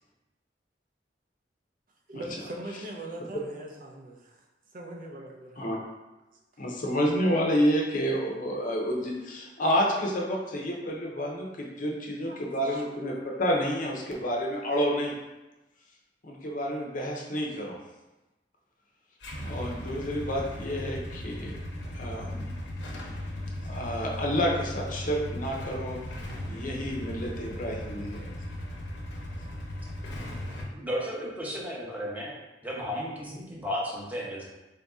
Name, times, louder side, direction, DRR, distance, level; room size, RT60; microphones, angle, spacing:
voice 1, 2.1-4.4 4.7-5.6 12.2-12.8, right 1 dB, 50° right, 0 dB, 0.6 m, -41 dB
voice 2, 6.6-15.2 16.2-17.8 19.4-21.6 21.9-22.6 23.6-26.0 26.5-28.3, equal, 50° left, -1 dB, 0.7 m, -29 dB
Motorcycle / Engine starting / Idling, 19.2-30.6, left 1 dB, 85° left, 0.9 m, -37 dB
voice 3, 30.7-32.3 32.6-34.4, equal, 10° right, -5 dB, 0.8 m, -34 dB
4.0 x 2.7 x 3.5 m, 1.1 s
head